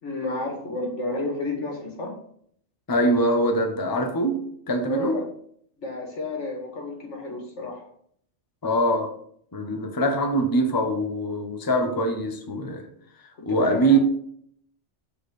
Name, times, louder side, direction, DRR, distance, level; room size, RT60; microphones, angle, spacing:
voice 1, 0.0-2.1 4.8-5.3 5.8-7.9 13.5-14.0, left 2 dB, 90° left, 2.2 m, -31 dB
voice 2, 2.9-5.2 8.6-9.1 9.5-12.9 13.4-14.0, right 1 dB, 20° left, 0.8 m, -23 dB
7.2 x 4.5 x 4.8 m
omnidirectional pair, 1.2 m